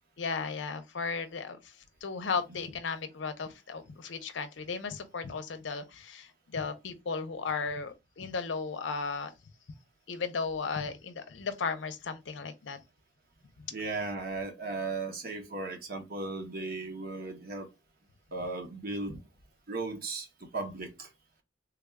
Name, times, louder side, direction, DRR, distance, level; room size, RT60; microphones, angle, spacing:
voice 1, 0.2-1.6 2.0-9.3 10.1-12.8, left 5 dB, 70° left, 0.6 m, -35 dB
voice 2, 13.7-17.7 18.3-19.2 19.7-21.1, right 3 dB, 50° right, 0.9 m, -36 dB
3.4 x 2.3 x 3.4 m
head